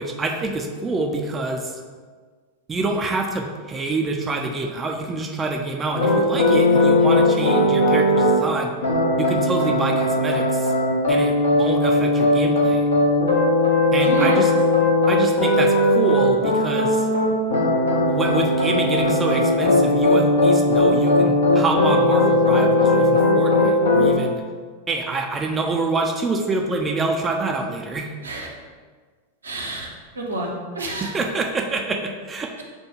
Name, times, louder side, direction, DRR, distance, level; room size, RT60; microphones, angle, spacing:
voice 1, 0.0-1.7 2.7-8.7 9.2-10.7 11.1-12.9 13.9-14.5 15.1-17.1 18.1-24.4 24.9-28.1 31.0-32.6, right 3 dB, 20° right, 1 dB, 0.4 m, -26 dB
sound 1, 5.9-8.4 8.8-24.1, left 2 dB, 75° left, 0.8 m, -18 dB
voice 2, 14.0-14.4 28.2-28.5 29.4-30.5 30.7-31.1, right 3 dB, 75° right, -1 dB, 0.7 m, -28 dB
6.5 x 2.2 x 3.1 m, 1.5 s
figure-of-eight pair, 90°, 0 cm